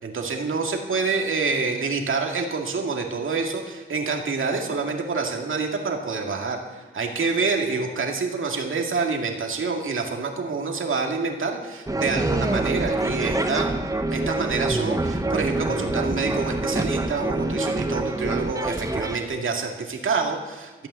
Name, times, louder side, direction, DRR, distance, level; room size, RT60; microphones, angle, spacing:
voice 1, 0.0-13.7 14.1-20.9, right 4 dB, 75° right, 2 dB, 2.1 m, -27 dB
sound 1, 11.9-19.2, right 2 dB, 15° right, 1.1 m, -26 dB
14.0 x 8.9 x 8.2 m, 1.3 s
wide cardioid pair, 85°, 21 cm